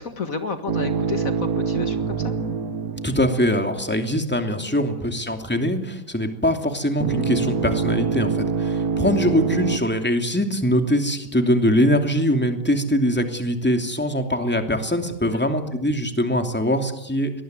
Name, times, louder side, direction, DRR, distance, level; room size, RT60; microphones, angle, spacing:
voice 1, 0.0-2.3 15.3-15.4, left 4 dB, 55° left, 8 dB, 2.1 m, -31 dB
sound 1, 0.7-4.0 7.0-9.8, right 5 dB, 60° right, 1.8 m, -25 dB
voice 2, 3.0-17.3, equal, 5° left, 5 dB, 2.7 m, -22 dB
23.5 x 20.0 x 9.5 m, 0.81 s
omnidirectional pair, 1.8 m